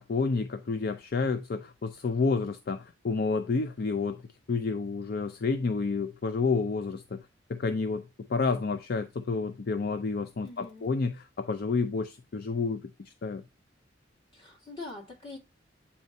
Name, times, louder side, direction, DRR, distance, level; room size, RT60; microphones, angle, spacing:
voice 1, 0.0-4.2 4.5-7.2 7.5-13.4, left 4 dB, 55° left, 0.5 m, -30 dB
voice 2, 10.4-10.9 14.3-15.4, left 2 dB, 30° left, 2.6 m, -43 dB
8.3 x 4.2 x 2.7 m
head